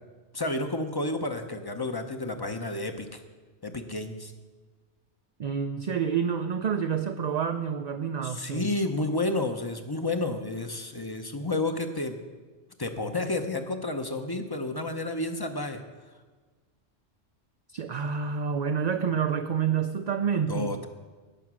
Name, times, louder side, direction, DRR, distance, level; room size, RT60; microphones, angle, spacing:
voice 1, 0.3-3.2 3.6-4.3 8.2-12.2 12.8-15.8 20.5-20.9, left 2 dB, 25° left, 7 dB, 0.7 m, -31 dB
voice 2, 5.4-8.7 17.7-20.7, right 7 dB, 50° right, 7 dB, 0.5 m, -28 dB
17.0 x 6.1 x 6.1 m, 1.4 s
omnidirectional pair, 1.1 m